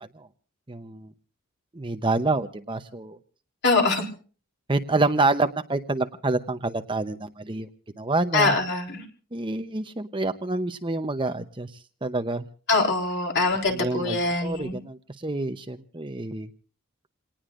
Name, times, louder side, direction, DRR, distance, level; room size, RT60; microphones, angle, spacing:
voice 1, 0.7-1.1 1.7-3.2 4.7-7.7 8.0-8.5 9.3-11.7 12.0-12.4 13.7-16.5, right 2 dB, 25° right, 8 dB, 0.8 m, -27 dB
voice 2, 3.6-4.0 8.3-9.0 12.7-14.8, left 3 dB, 50° left, 2 dB, 3.8 m, -23 dB
28.0 x 19.0 x 2.5 m, 0.40 s
head